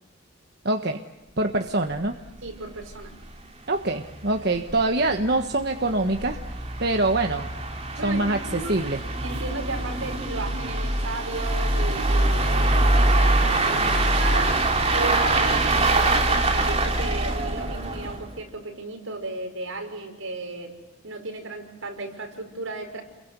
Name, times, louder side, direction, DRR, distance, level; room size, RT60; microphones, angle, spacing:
voice 1, 0.6-1.0 1.4-2.1 3.7-6.4 6.8-7.5 8.0-9.0, right 2 dB, 50° right, 5 dB, 1.4 m, -24 dB
sound 1, 1.9-2.0 2.3-2.4 2.8-2.9 3.2-3.3 4.0-18.3, right 2 dB, 30° right, 2.8 m, -24 dB
voice 2, 2.4-3.1 8.0-8.7 9.2-14.6 14.9-20.8 21.0-23.0, right 2 dB, 75° right, 3 dB, 5.8 m, -35 dB
29.5 x 22.5 x 8.3 m, 1.1 s
head